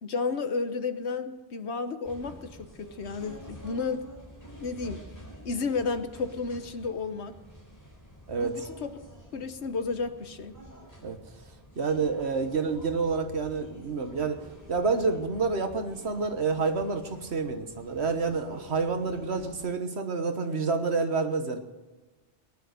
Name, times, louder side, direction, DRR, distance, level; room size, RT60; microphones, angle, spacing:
voice 1, 0.0-4.0 4.6-5.0 5.4-7.3 8.4-8.9 9.3-10.6, left 4 dB, 70° left, 9 dB, 1.3 m, -32 dB
sound 1, 2.0-19.6, equal, 15° left, 4.1 m, -49 dB
voice 2, 8.3-8.7 11.0-11.2 11.8-21.6, right 4 dB, 65° right, 7 dB, 1.6 m, -28 dB
19.0 x 10.5 x 6.8 m, 1.2 s
omnidirectional pair, 1.2 m